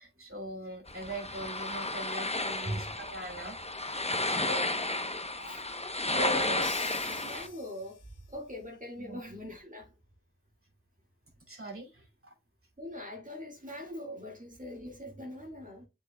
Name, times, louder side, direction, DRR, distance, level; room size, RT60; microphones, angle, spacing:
voice 1, 0.0-4.7 6.1-6.5 9.0-9.2 11.5-12.3, right 1 dB, 45° right, 2.5 m, -41 dB
sound 1, 0.9-7.5, left 2 dB, 20° left, 0.8 m, -33 dB
voice 2, 5.4-6.7 7.1-8.0 8.3-10.0 12.8-15.9, equal, 25° right, 1.9 m, -42 dB
Crash cymbal, 6.6-8.3, left 6 dB, 85° left, 0.8 m, -46 dB
7.8 x 5.5 x 2.2 m
wide cardioid pair, 40°, 31 cm